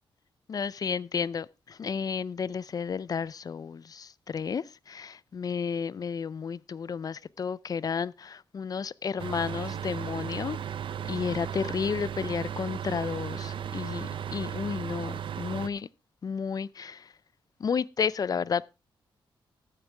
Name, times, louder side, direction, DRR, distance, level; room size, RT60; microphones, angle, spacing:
voice 1, 0.5-10.6 11.1-15.9 16.2-17.1 17.6-18.7, left 6 dB, 45° left, 0.5 m, -32 dB
sound 1, 9.2-15.7, right 9 dB, 70° right, 0.7 m, -35 dB
13.5 x 9.7 x 3.4 m
wide cardioid pair, 115°, 9 cm